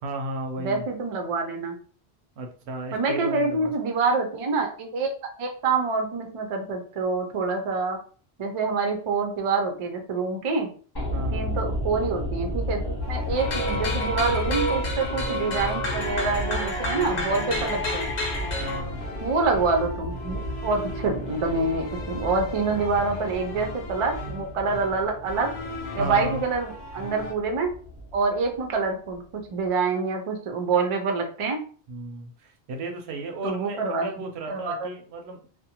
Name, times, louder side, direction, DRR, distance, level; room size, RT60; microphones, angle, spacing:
voice 1, 0.0-0.8 2.4-3.7 11.1-11.5 18.6-19.0 22.7-22.8 26.0-26.4 31.9-35.4, right 2 dB, 90° right, 3 dB, 0.8 m, -34 dB
voice 2, 0.6-1.8 2.9-5.1 5.4-8.0 8.4-10.7 11.3-18.1 19.2-25.5 25.9-27.7 28.1-29.2 29.5-31.6 33.4-34.1 34.5-34.9, right 4 dB, 45° right, 4 dB, 0.4 m, -26 dB
sound 1, 11.0-29.2 29.4-29.5, left 1 dB, 25° left, 0.9 m, -34 dB
sound 2, 13.0-27.3, left 1 dB, 50° left, 0.7 m, -38 dB
Ethnic Gamelan Bells, 13.4-18.8, equal, 85° left, 1.1 m, -29 dB
2.5 x 2.1 x 2.8 m, 0.43 s
omnidirectional pair, 1.1 m